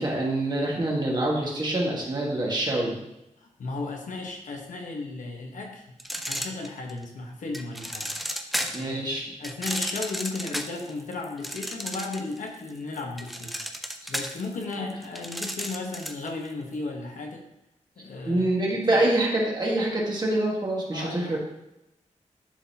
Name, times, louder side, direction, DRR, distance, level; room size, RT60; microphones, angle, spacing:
voice 1, 0.0-3.0 8.7-9.2 14.0-14.1 14.8-14.9 18.3-21.4, right 1 dB, 35° right, -3 dB, 1.5 m, -26 dB
voice 2, 3.4-6.0 6.2-8.1 8.6-13.6 14.1-17.4 18.0-18.5 18.9-19.1 20.9-21.4, left 3 dB, 85° left, 1 dB, 1.1 m, -35 dB
sound 1, 6.0-7.0 7.5-8.9 9.4-12.4 12.7-16.3, equal, ahead, 0.4 m, -33 dB
10.5 x 4.0 x 2.8 m, 0.89 s
wide cardioid pair, 155°, 13 cm